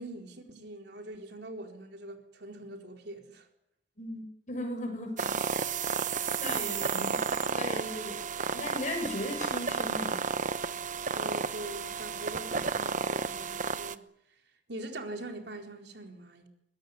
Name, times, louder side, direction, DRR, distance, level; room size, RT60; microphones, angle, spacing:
voice 1, 0.0-3.5 11.1-14.0 14.7-16.5, right 1 dB, 60° right, 4.2 m, -43 dB
voice 2, 4.0-5.9 6.4-8.2 8.5-10.2, left 1 dB, 45° left, 7.2 m, -37 dB
sound 1, 5.2-13.9, right 5 dB, 45° right, 1.0 m, -32 dB
23.0 x 20.0 x 10.0 m
head